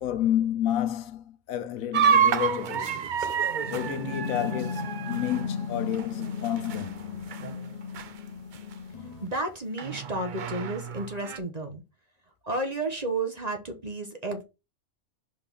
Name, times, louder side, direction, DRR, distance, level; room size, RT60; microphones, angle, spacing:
voice 1, 0.0-3.1 3.7-7.2, left 11 dB, 75° left, 1.1 m, -30 dB
sound 1, 1.9-7.0 7.3-7.7 7.9-8.1 8.7-8.8 9.8-11.4, right 7 dB, 60° right, 0.5 m, -28 dB
sound 2, 3.6-9.3, left 6 dB, 35° left, 0.8 m, -36 dB
voice 2, 9.2-11.8 12.4-14.4, right 2 dB, 30° right, 1.0 m, -32 dB
5.2 x 3.8 x 5.4 m
omnidirectional pair, 1.5 m